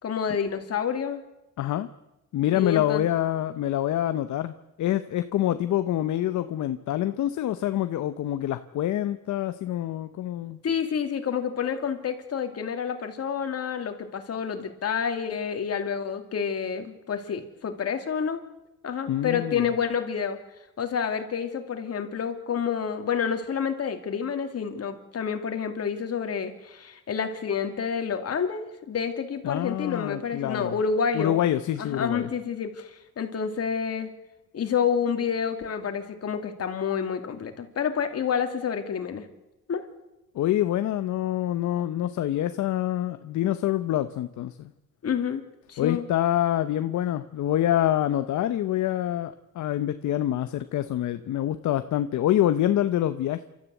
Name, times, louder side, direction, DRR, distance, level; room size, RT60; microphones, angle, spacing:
voice 1, 0.0-1.2 2.5-3.1 10.6-18.4 18.8-20.4 20.8-31.4 31.8-34.1 34.5-39.2 39.7-39.8 45.0-45.4 45.7-46.1, left 7 dB, 55° left, 6 dB, 2.8 m, -29 dB
voice 2, 1.6-1.9 2.3-10.6 19.1-19.7 29.4-30.7 31.1-32.3 40.3-44.7 45.8-53.4, left 12 dB, 70° left, 11 dB, 0.9 m, -26 dB
27.5 x 13.5 x 8.3 m, 0.96 s
cardioid pair, 90°, 30 cm